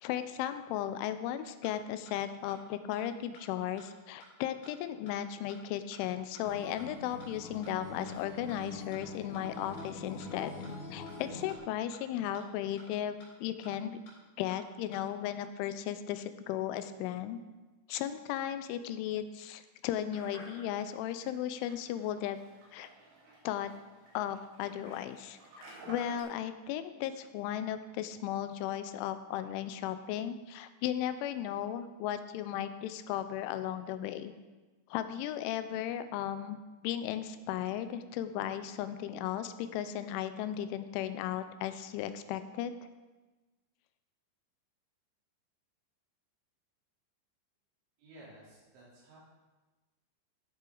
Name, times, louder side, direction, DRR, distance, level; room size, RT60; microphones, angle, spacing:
voice 1, 0.0-10.5 10.9-14.0 14.4-17.4 17.9-22.4 22.7-22.9 23.4-23.7 24.1-25.4 25.9-34.3 34.9-42.7, left 11 dB, 90° left, 11 dB, 3.1 m, -36 dB
sound 1, 1.2-1.3 1.6-1.7 2.1-2.2 2.5-2.6 2.9-3.0 3.3-3.4 3.8-3.9 4.2-4.3 4.6-4.7 5.1-5.2 5.5-5.6 5.9-6.0 6.3-6.4 6.8-6.9 7.2-7.3 7.6-7.7 8.1-8.2 8.5-8.6 8.9-9.0 9.3-9.4 9.8-9.9 10.2-10.3 10.6-10.7 11.1-11.2 11.5-11.6 11.9-12.0 12.3-12.4 12.8-12.9 13.2-13.3 13.6-13.7 14.1-14.2 14.5-14.6 14.9-15.0, equal, 70° left, 6.1 m, -55 dB
Acoustic guitar, 6.4-11.6, left 3 dB, 45° left, 3.3 m, -45 dB
sound 2, 20.1-26.2, right 2 dB, 60° right, 4.2 m, -53 dB
voice 2, 48.0-49.2, right 1 dB, 80° right, -8 dB, 5.9 m, -54 dB
13.5 x 7.5 x 3.9 m, 1.2 s
omnidirectional pair, 5.4 m